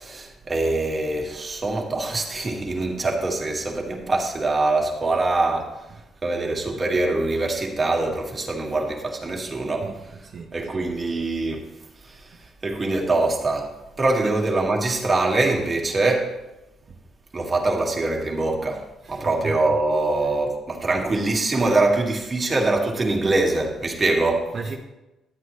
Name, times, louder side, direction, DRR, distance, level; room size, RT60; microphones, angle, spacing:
voice 1, 0.0-5.8 6.2-10.0 10.5-11.6 12.0-16.4 17.3-24.5, right 2 dB, 30° right, 1.7 m, -24 dB
voice 2, 9.8-10.9 14.2-14.4 16.9-17.0 19.0-19.6 24.5-24.8, right 4 dB, 55° right, 0.8 m, -36 dB
11.0 x 8.1 x 3.1 m
cardioid pair, 90°, 0 cm